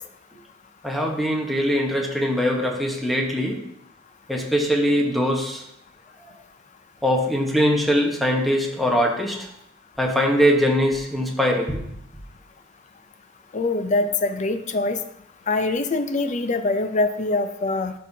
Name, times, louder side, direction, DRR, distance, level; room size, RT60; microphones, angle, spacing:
voice 1, 0.8-3.6 4.3-5.6 7.0-9.5 10.0-11.8, equal, ahead, 0 dB, 1.1 m, -22 dB
voice 2, 13.5-15.0 15.5-17.9, left 2 dB, 40° left, 9 dB, 0.5 m, -23 dB
11.5 x 5.6 x 2.8 m, 0.76 s
head